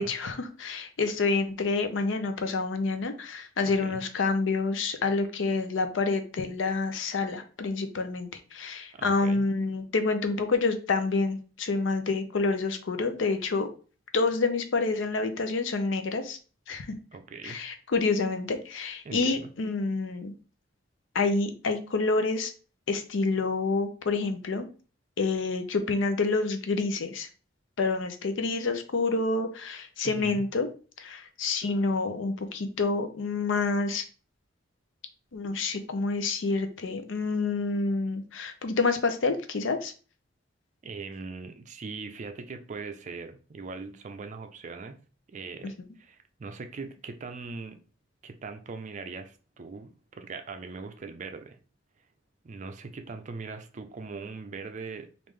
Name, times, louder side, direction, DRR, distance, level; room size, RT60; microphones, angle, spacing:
voice 1, 0.0-13.7 14.1-16.4 16.7-16.9 17.4-20.3 21.1-22.5 22.9-24.7 25.2-27.3 27.8-30.7 31.0-34.0 35.3-39.9, left 3 dB, 75° left, 7 dB, 0.5 m, -28 dB
voice 2, 3.6-4.0 9.0-9.5 17.1-17.6 19.0-19.5 30.0-30.5 40.8-45.0 45.3-47.8 48.2-51.6 52.4-55.1, right 4 dB, 40° right, 8 dB, 0.4 m, -40 dB
3.5 x 2.5 x 3.2 m, 0.37 s
head